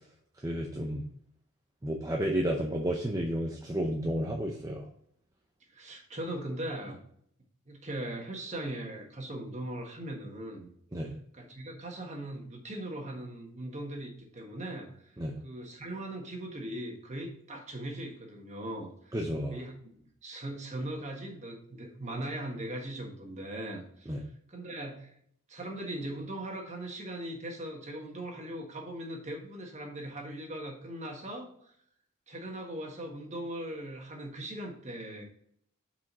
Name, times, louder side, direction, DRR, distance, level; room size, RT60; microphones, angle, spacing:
voice 1, 0.4-1.0 1.8-4.9 10.9-11.2 15.2-15.4 19.1-19.6 24.1-24.2, equal, 15° right, 1 dB, 0.6 m, -31 dB
voice 2, 5.7-7.0 7.7-10.7 11.3-15.2 15.4-19.2 19.5-24.2 24.5-25.1 25.5-31.7 32.3-35.2, right 1 dB, 35° right, 2 dB, 1.5 m, -39 dB
5.9 x 5.1 x 4.2 m, 0.66 s
head